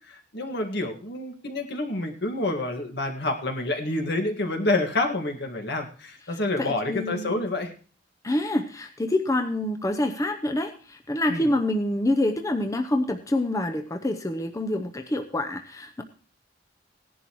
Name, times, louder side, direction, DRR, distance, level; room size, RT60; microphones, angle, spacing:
voice 1, 0.1-7.7 11.3-11.5, left 2 dB, 65° left, 4 dB, 1.9 m, -28 dB
voice 2, 6.3-7.4 8.2-16.0, left 1 dB, 20° left, 5 dB, 0.7 m, -27 dB
18.0 x 11.0 x 3.1 m, 0.39 s
head